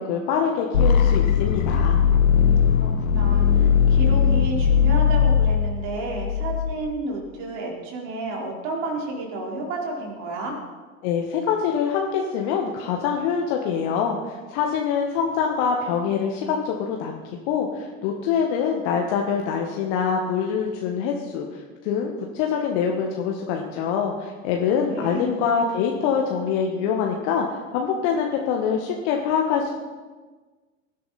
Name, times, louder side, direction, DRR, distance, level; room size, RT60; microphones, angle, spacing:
voice 1, 0.0-2.0 11.0-17.2 17.5-21.5 21.8-27.5 27.7-29.7, left 7 dB, 55° left, 1 dB, 1.8 m, -24 dB
sound 1, 0.7-6.7, left 7 dB, 75° left, 1.3 m, -19 dB
voice 2, 2.8-10.6 24.9-25.3, right 2 dB, 55° right, -1 dB, 4.3 m, -31 dB
19.5 x 12.5 x 4.3 m, 1.3 s
figure-of-eight pair, 75°, 41 cm